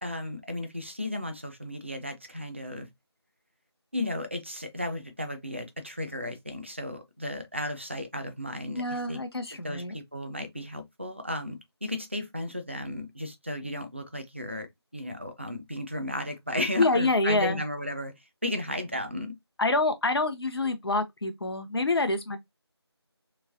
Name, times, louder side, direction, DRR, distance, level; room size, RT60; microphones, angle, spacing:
voice 1, 0.0-2.9 3.9-9.2 9.6-14.7 14.9-18.1 18.4-19.3, left 1 dB, 25° right, 0.4 m, -34 dB
voice 2, 8.7-10.0 16.8-17.6 19.6-22.4, left 2 dB, 65° left, 0.6 m, -26 dB
3.1 x 2.8 x 2.5 m
figure-of-eight pair, 170°, 14 cm